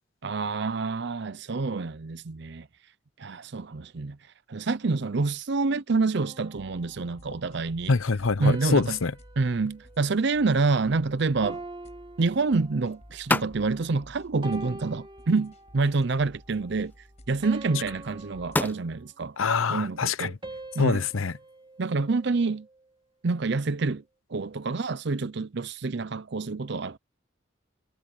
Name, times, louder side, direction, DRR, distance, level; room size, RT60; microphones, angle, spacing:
voice 1, 0.2-2.7 3.2-4.2 4.5-7.9 8.4-9.0 9.4-11.6 12.2-16.9 17.3-19.4 19.7-20.3 20.8-21.0 21.8-22.7 23.2-24.0 24.3-27.0, right 3 dB, 55° right, 0.6 m, -27 dB
sound 1, 6.1-7.4 8.4-10.9 11.4-13.1 13.7-14.0 14.4-16.0 16.4-16.7 17.4-19.3 20.4-22.8, right 2 dB, 25° right, 2.6 m, -45 dB
sound 2, 6.6-18.7, equal, 30° left, 6.8 m, -53 dB
voice 2, 7.9-9.1 19.4-20.3 20.8-21.3, left 4 dB, 75° left, 0.7 m, -25 dB
sound 3, 9.4-22.1, left 2 dB, 10° left, 0.5 m, -38 dB
head